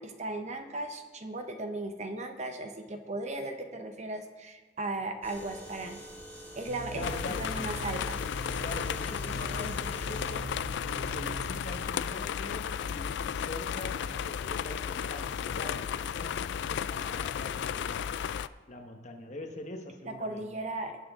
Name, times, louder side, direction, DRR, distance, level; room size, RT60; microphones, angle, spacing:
voice 1, 0.0-6.0 6.6-8.2 20.0-21.0, right 2 dB, 35° right, 6 dB, 0.8 m, -37 dB
sound 1, 5.2-10.3, equal, 15° right, 3.5 m, -47 dB
sound 2, 6.7-11.8, right 2 dB, 65° right, 3.9 m, -42 dB
voice 2, 6.9-7.6 8.6-18.1 18.7-20.5, left 2 dB, 40° left, 4 dB, 1.1 m, -43 dB
sound 3, 7.0-18.5, left 8 dB, 60° left, 0.3 m, -34 dB
19.0 x 6.3 x 3.6 m, 1.4 s
head